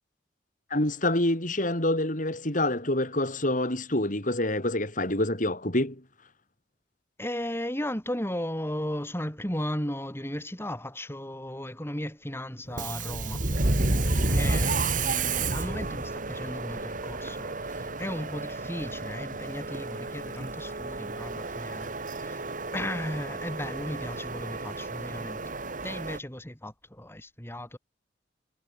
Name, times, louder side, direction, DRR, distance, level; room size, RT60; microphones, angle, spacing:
voice 1, 0.7-6.0, left 1 dB, 45° left, 4.8 m, -27 dB
voice 2, 7.2-13.5 14.3-22.4 22.7-25.5 25.8-27.8, left 1 dB, 15° left, 5.9 m, -35 dB
Subway metro underground, 12.7-26.2, right 2 dB, 50° right, 2.4 m, -31 dB
head